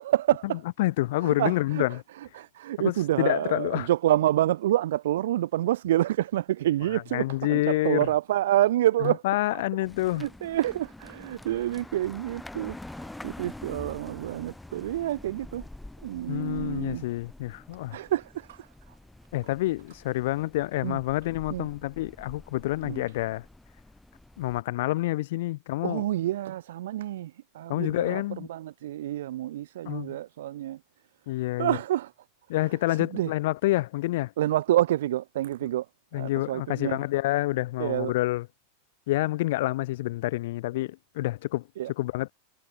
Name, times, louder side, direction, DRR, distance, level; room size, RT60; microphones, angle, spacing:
voice 1, 0.0-0.6 1.2-9.2 9.5-9.6 10.1-15.6 16.0-17.0 17.9-18.7 20.8-21.0 21.5-21.7 22.8-23.0 25.8-30.8 31.6-32.1 32.6-33.3 34.4-35.8 36.1-37.0 37.8-38.1 41.8-41.9, right 13 dB, 80° right, 1.6 m, -28 dB
voice 2, 0.8-2.0 2.8-3.9 7.1-8.1 9.0-10.3 16.3-18.0 19.3-23.4 24.4-26.0 27.7-28.5 29.8-30.2 31.3-31.8 32.5-34.3 36.1-38.4 39.1-41.6 42.0-42.3, left 17 dB, 60° left, 1.5 m, -28 dB
sound 1, 9.8-24.6, left 1 dB, 5° left, 5.0 m, -46 dB
supercardioid pair, 170°, 0 cm